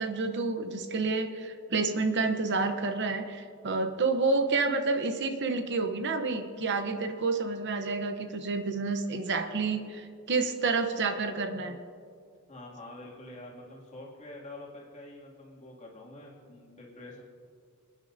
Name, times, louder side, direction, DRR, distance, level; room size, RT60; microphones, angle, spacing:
voice 1, 0.0-11.8, right 3 dB, 55° right, 7 dB, 0.8 m, -29 dB
voice 2, 12.5-17.2, left 2 dB, 30° left, -4 dB, 2.5 m, -46 dB
26.0 x 10.0 x 2.7 m, 2.2 s
head